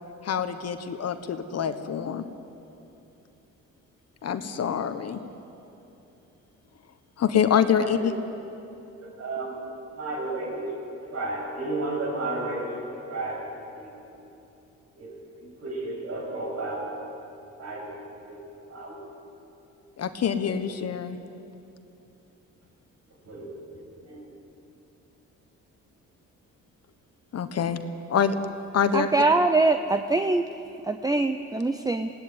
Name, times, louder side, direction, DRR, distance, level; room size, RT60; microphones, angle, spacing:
voice 1, 0.2-2.2 4.2-5.2 7.2-8.1 20.0-21.2 27.3-27.8 28.1-28.4 28.7-29.1, left 8 dB, 55° left, 9 dB, 1.3 m, -25 dB
voice 2, 9.0-9.5 10.0-10.6 11.1-12.7 13.1-13.9 14.9-15.1 15.4-16.8 17.6-18.4 18.7-19.0 23.2-23.5 24.0-24.2, right 2 dB, 55° right, -2 dB, 7.7 m, -32 dB
voice 3, 28.9-30.4 30.8-32.1, right 3 dB, 10° right, 7 dB, 0.7 m, -23 dB
20.5 x 17.0 x 9.6 m, 2.9 s
cardioid pair, 90°, 30 cm